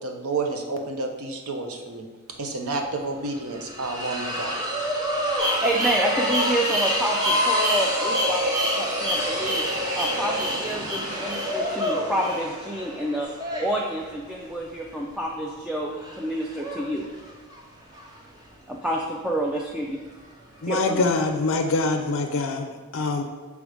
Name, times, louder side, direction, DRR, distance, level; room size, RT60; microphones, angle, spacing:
voice 1, 0.0-2.1 2.4-4.6, right 3 dB, 75° right, 3 dB, 0.8 m, -30 dB
sound 1, 2.4-2.5 2.7-21.6, equal, 20° right, 0.8 m, -31 dB
voice 2, 5.3-8.5 8.8-9.6 9.9-13.3 13.6-17.1 18.7-20.0 20.7-21.1, right 1 dB, 5° right, -2 dB, 0.3 m, -28 dB
sound 2, 5.4-13.2, equal, 45° right, 2.0 m, -27 dB
voice 3, 20.6-23.2, left 3 dB, 60° left, 5 dB, 0.5 m, -24 dB
6.4 x 3.4 x 4.9 m, 1.3 s
head